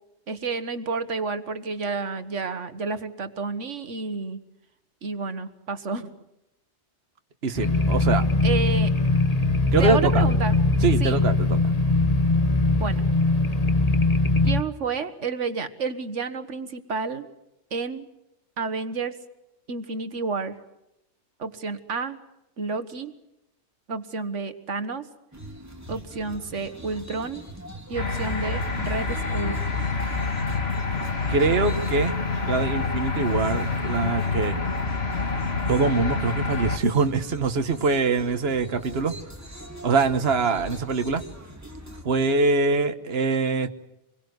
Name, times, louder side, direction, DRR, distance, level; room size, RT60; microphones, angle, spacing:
voice 1, 0.3-4.4 5.0-6.2 8.4-8.9 9.8-10.6 11.0-11.2 12.8-13.1 14.4-17.3 17.7-18.1 18.6-19.2 19.7-20.6 21.4-22.2 22.6-23.1 23.9-25.1 25.9-27.4 27.9-29.6, right 4 dB, 90° right, 11 dB, 1.8 m, -30 dB
voice 2, 7.4-8.3 9.7-10.2 10.8-11.7 31.3-32.2 32.4-34.6 35.7-39.2 39.8-41.2 42.0-43.7, right 4 dB, 60° right, 8 dB, 1.5 m, -23 dB
sound 1, 7.5-14.6, left 2 dB, 35° left, 1.6 m, -21 dB
sound 2, 25.3-42.0, right 1 dB, 15° right, 3.7 m, -42 dB
sound 3, 28.0-36.8, left 4 dB, 60° left, 2.5 m, -27 dB
27.0 x 22.0 x 8.1 m, 0.87 s
omnidirectional pair, 1.2 m